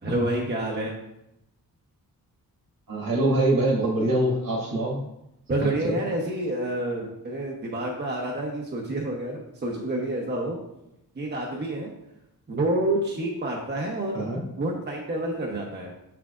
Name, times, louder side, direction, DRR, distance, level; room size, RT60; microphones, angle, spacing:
voice 1, 0.0-0.9 5.5-10.6 11.2-11.9 12.5-14.2 14.6-15.9, right 1 dB, 30° right, -1 dB, 0.9 m, -28 dB
voice 2, 2.9-5.0 5.6-6.0 14.1-14.4, right 1 dB, 65° right, -2 dB, 2.0 m, -24 dB
6.4 x 5.9 x 2.5 m, 0.83 s
wide cardioid pair, 115°, 36 cm